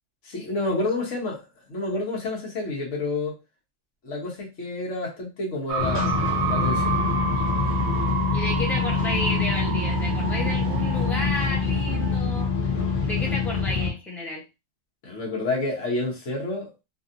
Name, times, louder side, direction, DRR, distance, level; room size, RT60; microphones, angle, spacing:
voice 1, 0.2-1.4 1.7-3.4 4.0-6.9 15.0-16.7, left 2 dB, 70° left, 1.4 m, -29 dB
sound 1, 5.7-12.2, right 5 dB, 65° right, 0.9 m, -30 dB
sound 2, 5.8-13.9, left 4 dB, 45° left, 1.0 m, -25 dB
voice 2, 8.3-12.7 13.0-14.4, left 1 dB, ahead, 0.7 m, -32 dB
3.0 x 2.8 x 2.5 m
omnidirectional pair, 1.3 m